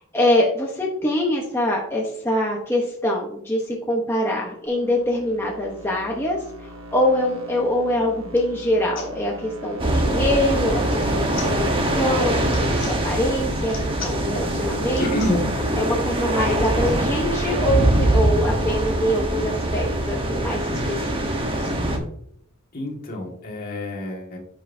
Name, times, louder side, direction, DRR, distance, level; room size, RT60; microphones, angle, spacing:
voice 1, 0.1-11.6 12.0-15.1 15.8-21.2 21.6-21.7, left 1 dB, 10° left, -2 dB, 1.0 m, -24 dB
sound 1, 4.7-18.1, right 1 dB, 65° right, 1.2 m, -39 dB
sound 2, 7.6-7.7 8.2-8.5 8.9-9.1 10.8-11.1 11.3-11.5 12.4-13.0 13.6-14.2 14.8-15.4 16.5-17.0 17.6-17.7 17.8-17.9 18.2-19.7, left 5 dB, 65° left, 3.2 m, -40 dB
sound 3, 9.8-22.0, right 1 dB, 25° right, 1.1 m, -23 dB
voice 2, 15.0-15.5 22.7-24.4, left 1 dB, 45° left, -1 dB, 2.0 m, -27 dB
10.0 x 5.5 x 2.7 m, 0.68 s
head